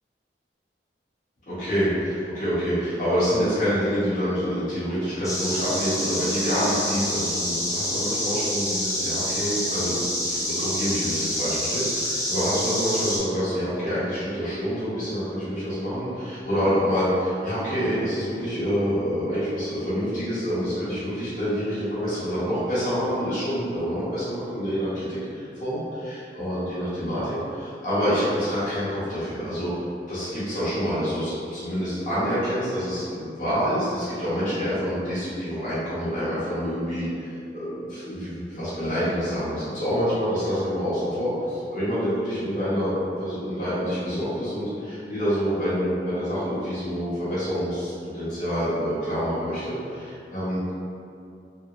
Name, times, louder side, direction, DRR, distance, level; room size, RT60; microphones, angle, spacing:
voice 1, 1.5-29.7 30.1-50.7, equal, 45° left, -12 dB, 1.2 m, -27 dB
sound 1, 5.2-13.2, left 1 dB, 20° left, 0.4 m, -27 dB
3.2 x 2.0 x 2.5 m, 2.5 s
head